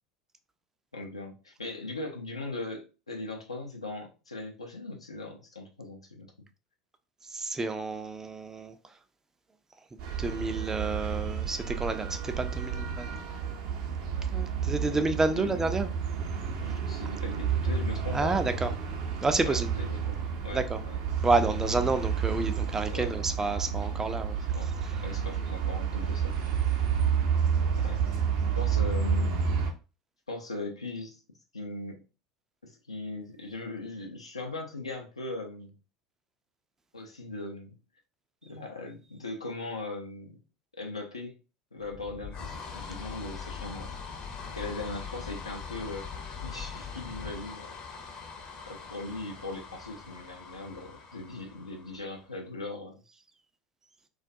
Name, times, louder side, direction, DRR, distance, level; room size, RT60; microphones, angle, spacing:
voice 1, 0.9-6.5 14.6-15.6 16.6-18.4 19.4-21.0 22.9-23.1 24.5-24.7 25.0-26.6 27.8-28.0 28.6-29.4 30.3-31.2 31.5-32.0 32.6-35.7 36.9-37.8 38.4-40.4 40.8-41.4 41.7-44.0 44.5-47.8 48.7-53.0, left 2 dB, 90° left, 0.5 m, -39 dB
voice 2, 7.3-8.7 10.2-13.2 14.3-15.9 18.1-18.7 19.2-19.7 20.5-20.8 21.2-24.4, right 3 dB, 15° right, 0.4 m, -29 dB
sound 1, 10.0-29.7, right 6 dB, 60° right, 0.6 m, -30 dB
sound 2, 41.8-52.3, left 5 dB, 40° left, 0.6 m, -42 dB
2.3 x 2.2 x 2.6 m
figure-of-eight pair, 75°, 3 cm